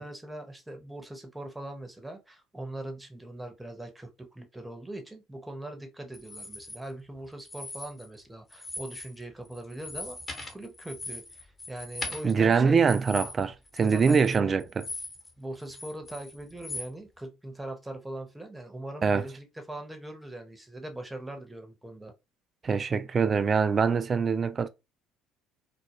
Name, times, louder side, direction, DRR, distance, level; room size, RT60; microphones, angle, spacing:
voice 1, 0.0-10.2 10.5-12.8 13.8-14.6 15.4-22.1, right 1 dB, 10° right, 0.8 m, -41 dB
Mysounds LG-FR Kylian-metal chain, 6.1-6.8 7.4-8.2 8.5-9.2 9.5-15.3 15.6-16.9, left 2 dB, 25° left, 1.0 m, -40 dB
voice 2, 12.2-14.7 19.0-19.2 22.6-24.7, right 5 dB, 35° right, 0.3 m, -24 dB
2.3 x 2.1 x 2.9 m
hypercardioid pair, 60°, 0 cm